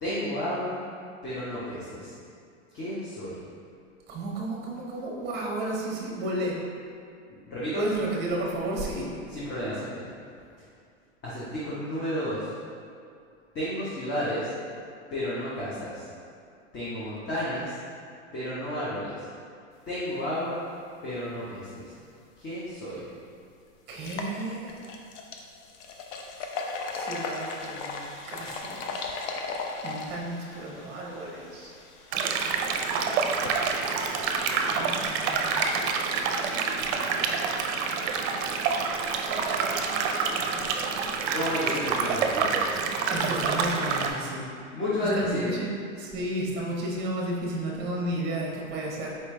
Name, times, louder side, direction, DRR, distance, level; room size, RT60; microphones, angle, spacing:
voice 1, 0.0-0.8 1.2-2.1 2.7-3.4 7.5-7.9 9.3-10.1 11.2-12.4 13.5-14.5 15.1-16.0 16.7-17.7 18.3-19.2 19.9-20.6 21.0-21.8 22.4-23.0 41.3-42.7 44.7-45.6, left 1 dB, 30° left, -9 dB, 1.0 m, -31 dB
voice 2, 4.1-6.6 7.8-9.1 23.9-24.8 26.9-28.0 28.3-29.1 29.8-31.7 34.7-36.0 39.3-40.8 43.1-44.5 45.0-45.7 46.0-49.2, right 1 dB, 25° right, -2 dB, 0.8 m, -33 dB
sound 1, 22.7-22.8 23.2-23.3 23.9-36.7, left 3 dB, 60° left, 0.6 m, -39 dB
sound 2, 32.1-44.1, right 5 dB, 55° right, 0.5 m, -27 dB
4.4 x 3.3 x 3.2 m, 2.4 s
hypercardioid pair, 110°, 39 cm